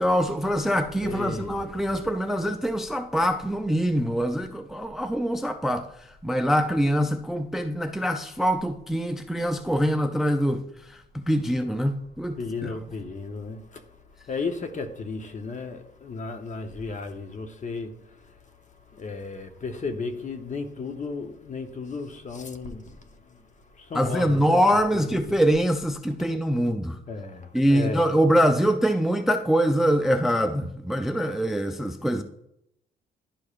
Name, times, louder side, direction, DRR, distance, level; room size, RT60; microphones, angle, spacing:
voice 1, 0.0-5.9 6.2-12.7 23.9-27.0 27.5-32.2, equal, ahead, 0.4 m, -24 dB
voice 2, 1.0-1.6 12.4-13.8 14.3-18.0 18.9-23.4 23.8-24.6 24.9-25.4 27.1-28.1, left 4 dB, 40° left, 0.9 m, -34 dB
11.5 x 4.8 x 2.4 m
cardioid pair, 90°, 20 cm